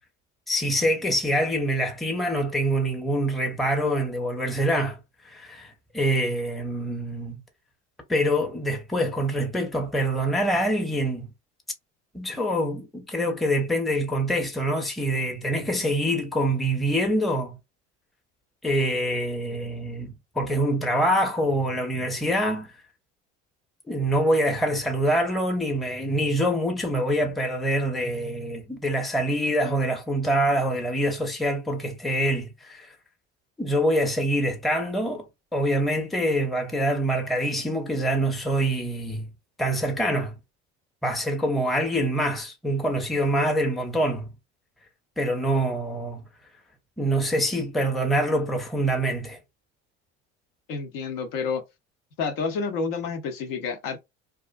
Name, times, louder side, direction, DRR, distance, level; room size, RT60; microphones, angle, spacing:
voice 1, 0.5-5.0 5.3-7.4 8.1-11.3 12.1-17.6 18.6-22.7 23.9-33.0 33.6-35.3 35.5-39.3 39.6-40.4 41.0-44.3 45.2-46.2 47.0-49.4, right 1 dB, ahead, 0.7 m, -25 dB
voice 2, 50.7-51.6 52.2-54.0, left 5 dB, 65° left, 0.9 m, -29 dB
2.4 x 2.1 x 2.5 m
hypercardioid pair, 70°, 35 cm